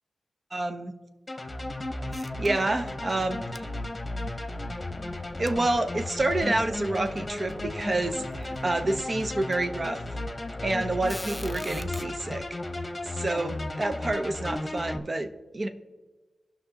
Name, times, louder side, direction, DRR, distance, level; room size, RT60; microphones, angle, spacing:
voice 1, 0.5-0.9 2.1-3.7 5.4-10.0 10.6-12.6 13.0-15.7, right 2 dB, 45° right, 8 dB, 0.8 m, -28 dB
sound 1, 1.3-15.0, left 2 dB, 30° left, 0.9 m, -34 dB
sound 2, 2.1-2.9 3.2-3.3 3.5-3.6 5.5-5.6 6.3-6.4 7.2-7.3 7.5-7.7 8.3-8.7 9.5-9.6 11.0-12.0, left 1 dB, 10° left, 0.3 m, -42 dB
17.0 x 5.8 x 2.9 m, 1.2 s
cardioid pair, 55°, 0 cm